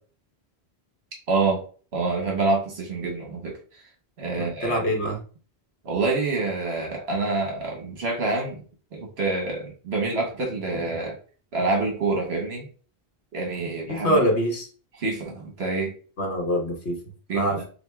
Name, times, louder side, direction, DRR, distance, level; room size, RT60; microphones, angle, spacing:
voice 1, 1.3-1.6 1.9-3.6 4.2-4.8 5.8-8.6 8.9-11.1 11.5-12.7 13.3-14.2 15.0-15.9 17.3-17.5, right 3 dB, 75° right, 1 dB, 1.2 m, -26 dB
voice 2, 4.3-5.2 13.9-14.7 16.2-17.0 17.3-17.6, equal, 85° left, 1 dB, 1.4 m, -24 dB
6.9 x 2.5 x 2.3 m, 0.38 s
omnidirectional pair, 1.1 m